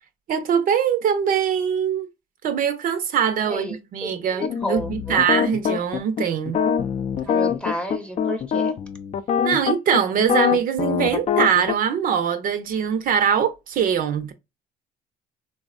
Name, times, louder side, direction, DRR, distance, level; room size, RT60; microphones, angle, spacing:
voice 1, 0.3-2.1 2.4-6.6 9.4-14.3, right 8 dB, 55° right, 0.5 m, -22 dB
voice 2, 3.5-5.2 7.2-8.8, equal, 5° left, 0.7 m, -31 dB
sound 1, 4.4-11.7, left 7 dB, 40° left, 0.4 m, -23 dB
3.5 x 2.1 x 2.3 m
cardioid pair, 110°, 17 cm